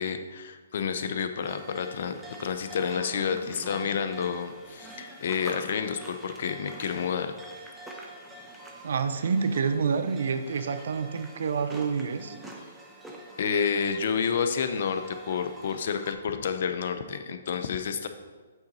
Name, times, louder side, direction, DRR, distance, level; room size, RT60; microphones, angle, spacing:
voice 1, 0.0-2.1 2.4-7.3 13.4-18.1, left 6 dB, 55° left, 8 dB, 0.6 m, -29 dB
sound 1, 1.4-16.1, right 1 dB, 5° right, 0.8 m, -45 dB
voice 2, 8.8-12.4, right 5 dB, 65° right, 9 dB, 0.6 m, -28 dB
8.3 x 3.9 x 4.1 m, 1.4 s
hypercardioid pair, 135°, 0 cm